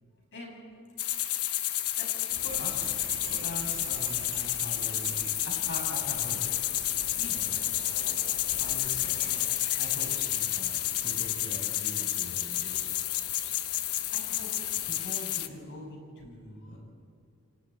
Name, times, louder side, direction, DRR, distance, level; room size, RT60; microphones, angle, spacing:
voice 1, 0.3-0.8 2.0-6.5 7.2-7.6 8.5-9.5 9.8-12.9 14.1-16.8, left 1 dB, 55° left, -1 dB, 6.8 m, -43 dB
sound 1, 1.0-15.5, left 13 dB, 80° left, 0.9 m, -30 dB
sound 2, 2.3-15.1, right 1 dB, 80° right, 4.1 m, -50 dB
Bell, 2.5-5.7, right 12 dB, 55° right, 3.0 m, -44 dB
28.5 x 24.0 x 4.4 m, 2.5 s
head